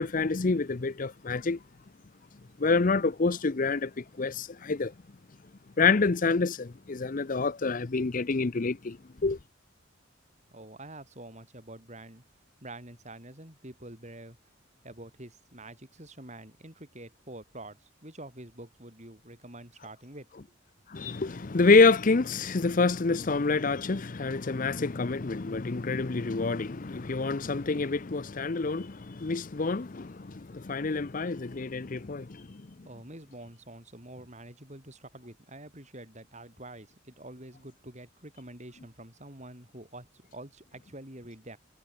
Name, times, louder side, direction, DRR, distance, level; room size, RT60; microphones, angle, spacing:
voice 1, 0.0-1.6 2.6-4.9 5.8-9.0 9.2-9.4 20.9-32.4, left 4 dB, 40° left, 0.6 m, -27 dB
voice 2, 10.5-12.2 12.6-14.4 14.8-20.3 32.8-41.6, right 1 dB, 35° right, 7.3 m, -47 dB
head